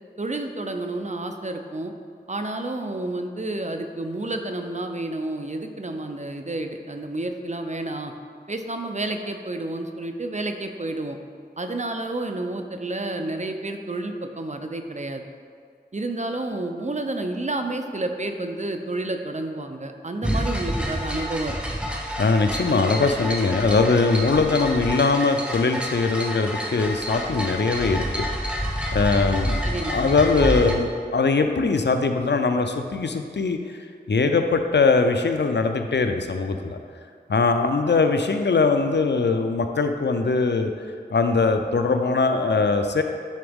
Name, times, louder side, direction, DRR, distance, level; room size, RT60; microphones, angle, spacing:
voice 1, 0.2-1.9 2.3-8.1 8.5-11.2 11.6-15.3 15.9-21.8 29.6-30.1, right 2 dB, 45° right, 5 dB, 0.5 m, -30 dB
sound 1, 20.2-30.7, equal, 5° right, 0.9 m, -28 dB
voice 2, 22.2-28.3 28.9-29.6 29.9-33.6 34.1-36.8 37.3-40.7 41.1-43.0, left 4 dB, 85° left, 6 dB, 0.5 m, -21 dB
10.5 x 3.9 x 3.5 m, 2.2 s
wide cardioid pair, 45°, 18 cm